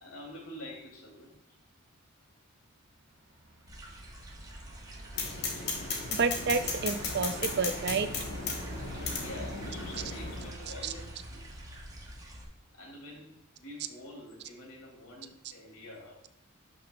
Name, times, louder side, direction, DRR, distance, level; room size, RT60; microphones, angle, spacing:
voice 1, 0.0-1.4 4.9-5.0 5.8-6.1 8.9-11.4 12.7-16.3, left 1 dB, 80° left, -1 dB, 2.6 m, -47 dB
Truck, 3.2-12.5, right 1 dB, 70° right, 2.8 m, -45 dB
sound 1, 3.7-12.4, right 1 dB, 15° right, 1.0 m, -47 dB
sound 2, 5.2-10.5, left 4 dB, 50° left, 1.3 m, -36 dB
voice 2, 6.1-8.1 10.8-10.9, right 4 dB, 55° right, 11 dB, 0.5 m, -29 dB
11.5 x 6.0 x 2.3 m, 0.79 s
head